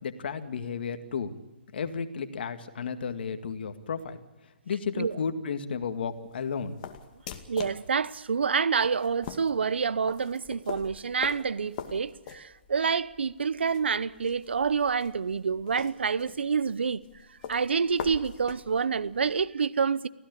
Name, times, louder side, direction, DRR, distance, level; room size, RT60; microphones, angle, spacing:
voice 1, 0.0-1.3 1.7-6.8, left 6 dB, 65° left, 2.1 m, -33 dB
sound 1, 5.8-19.6, left 8 dB, 40° left, 2.2 m, -44 dB
voice 2, 7.5-17.0 17.5-20.1, right 6 dB, 80° right, 0.8 m, -27 dB
24.5 x 16.5 x 8.4 m
hypercardioid pair, 140°, 6 cm